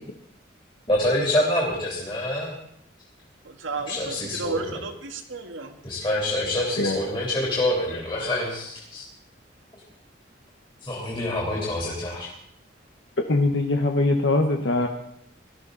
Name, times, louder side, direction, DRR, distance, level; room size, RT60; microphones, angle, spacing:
voice 1, 0.9-2.5 3.9-4.8 5.8-9.0 10.8-12.3, left 1 dB, 25° left, -4 dB, 3.3 m, -26 dB
voice 2, 3.5-5.7, right 3 dB, 90° right, 4 dB, 1.8 m, -33 dB
voice 3, 13.3-14.9, left 2 dB, 70° left, 3 dB, 1.1 m, -22 dB
19.0 x 13.0 x 4.1 m, 0.71 s
head